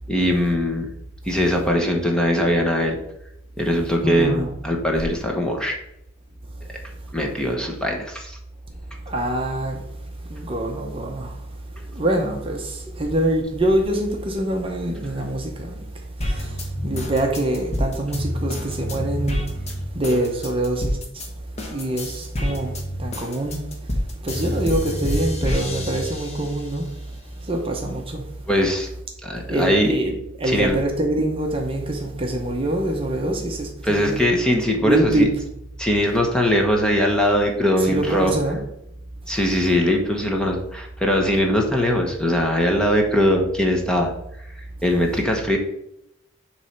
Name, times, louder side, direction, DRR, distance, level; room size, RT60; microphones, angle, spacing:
voice 1, 0.1-0.9 1.3-3.0 3.6-5.8 7.1-8.4 28.5-28.9 29.2-29.9 30.4-30.8 33.8-35.3 35.8-38.3 39.3-44.1 44.8-45.6, equal, 5° left, 0.9 m, -21 dB
voice 2, 4.0-4.5 9.1-9.8 10.3-11.4 11.9-15.8 16.2-19.4 19.9-21.0 21.7-23.7 24.2-26.9 27.4-28.2 29.5-34.2 34.8-35.3 37.9-38.6, right 1 dB, 25° right, 0.8 m, -24 dB
sound 1, 16.2-21.3 21.6-26.8 27.2-28.2, left 1 dB, 30° left, 1.2 m, -28 dB
7.0 x 3.2 x 5.7 m
head